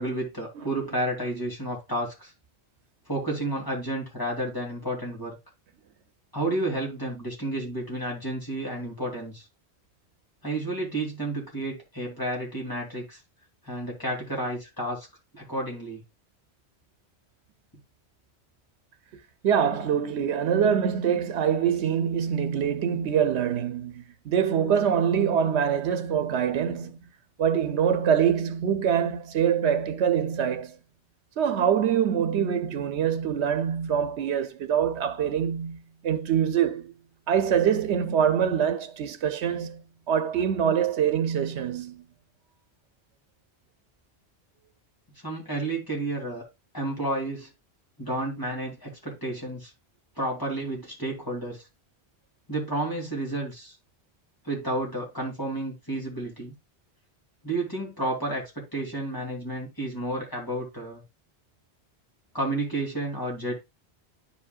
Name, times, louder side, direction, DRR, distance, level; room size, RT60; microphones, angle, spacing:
voice 1, 0.0-2.3 3.1-5.3 6.3-9.4 10.4-13.2 13.6-15.1 15.3-16.0 45.2-46.5 46.7-47.5 48.0-49.7 50.2-51.7 52.5-53.7 54.4-56.5 57.4-61.0 62.3-63.5, right 1 dB, 20° left, 3.0 m, -31 dB
voice 2, 19.4-27.1 27.4-30.8 31.4-36.9 37.3-42.0, right 8 dB, 85° right, 1.0 m, -24 dB
10.5 x 5.0 x 2.4 m
omnidirectional pair, 1.1 m